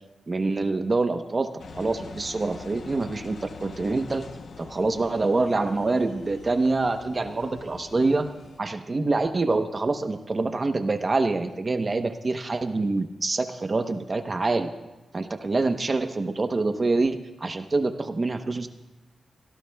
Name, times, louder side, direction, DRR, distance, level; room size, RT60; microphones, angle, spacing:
voice 1, 0.3-4.3 4.6-8.3 8.6-14.7 15.1-18.7, right 3 dB, 35° right, 7 dB, 0.9 m, -26 dB
Engine, 1.6-8.6, left 5 dB, 65° left, 0.8 m, -44 dB
25.5 x 17.5 x 2.3 m, 1.0 s
cardioid pair, 90°, 0 cm